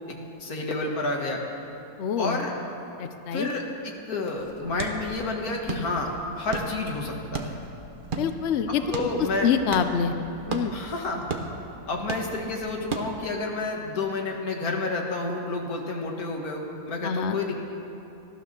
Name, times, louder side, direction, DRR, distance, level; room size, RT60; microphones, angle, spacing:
voice 1, 0.1-1.4 2.2-2.5 3.3-3.6 4.1-7.6 8.7-9.5 10.7-11.2 11.9-17.6, left 3 dB, 50° left, 1 dB, 2.0 m, -30 dB
voice 2, 2.0-2.4 3.0-3.5 8.2-8.8 9.4-10.1 10.5-10.8 17.0-17.4, left 7 dB, 80° left, 8 dB, 0.6 m, -25 dB
sound 1, 4.4-13.4, right 3 dB, 40° right, 0.7 m, -36 dB
14.5 x 12.0 x 6.7 m, 2.9 s
omnidirectional pair, 2.1 m